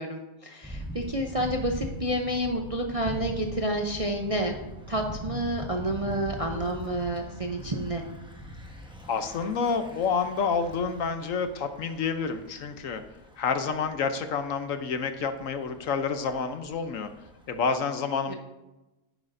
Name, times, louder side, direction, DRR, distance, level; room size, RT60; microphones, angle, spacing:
voice 1, 0.0-4.6 4.9-8.0 18.3-18.4, right 1 dB, 60° right, 2 dB, 0.3 m, -29 dB
Thunder / Bicycle, 0.6-17.8, equal, 5° right, 0.6 m, -42 dB
voice 2, 9.1-13.0 13.4-17.1 17.5-18.3, left 5 dB, 65° left, 8 dB, 0.9 m, -29 dB
10.5 x 9.7 x 2.5 m, 1.0 s
omnidirectional pair, 1.7 m